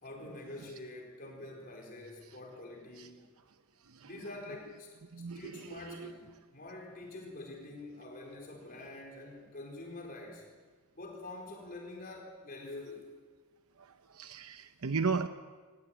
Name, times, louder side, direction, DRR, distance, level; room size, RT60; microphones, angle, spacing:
voice 1, 0.0-3.3 4.0-4.9 5.3-10.5 10.9-13.1, left 2 dB, 40° left, 1 dB, 4.5 m, -46 dB
voice 2, 14.2-15.3, right 4 dB, 90° right, 9 dB, 0.9 m, -33 dB
22.5 x 20.0 x 9.1 m, 1.5 s
head